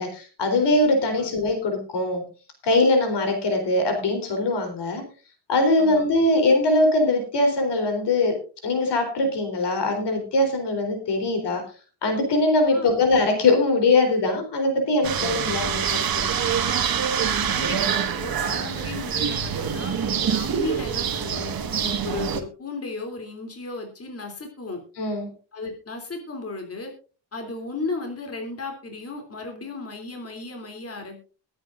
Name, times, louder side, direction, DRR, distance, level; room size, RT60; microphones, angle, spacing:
voice 1, 0.0-2.2 2.6-5.0 5.5-11.6 12.0-16.4 21.8-22.0 25.0-25.3, left 2 dB, 60° left, 5 dB, 3.9 m, -22 dB
voice 2, 12.7-13.0 17.5-21.6 22.0-24.8 25.5-26.9 27.3-31.2, left 3 dB, 30° left, 4 dB, 3.2 m, -35 dB
sound 1, 15.0-22.4, right 7 dB, 50° right, 1.7 m, -25 dB
22.0 x 9.4 x 2.6 m, 0.35 s
cardioid pair, 115°, 45 cm